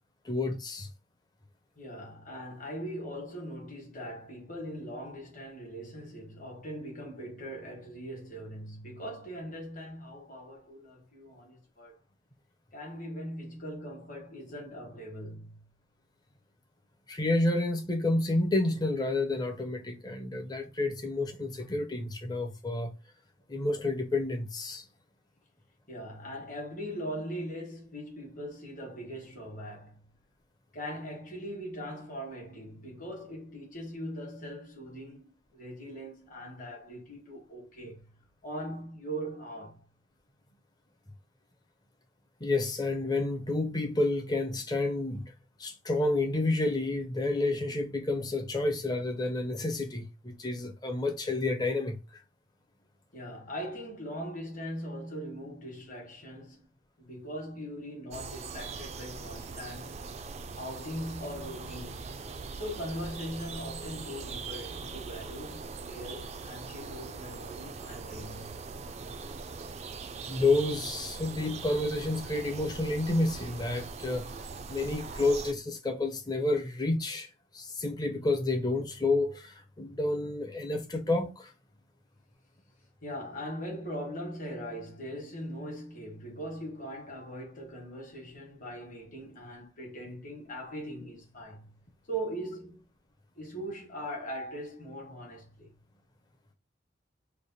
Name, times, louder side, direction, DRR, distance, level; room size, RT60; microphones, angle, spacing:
voice 1, 0.2-0.9 17.1-22.9 23.5-24.9 42.4-45.2 45.6-52.2 70.3-74.3 74.7-81.5, left 2 dB, 20° left, 0.6 m, -30 dB
voice 2, 1.7-12.0 12.7-15.6 25.9-30.0 30.7-38.0 38.4-39.8 53.1-56.7 57.0-60.0 60.6-62.2 62.5-68.6 83.0-91.7 92.1-92.8 93.4-95.7, equal, 45° left, 1.3 m, -40 dB
sound 1, 58.1-75.5, right 4 dB, 35° right, 0.3 m, -41 dB
3.3 x 2.2 x 3.9 m
head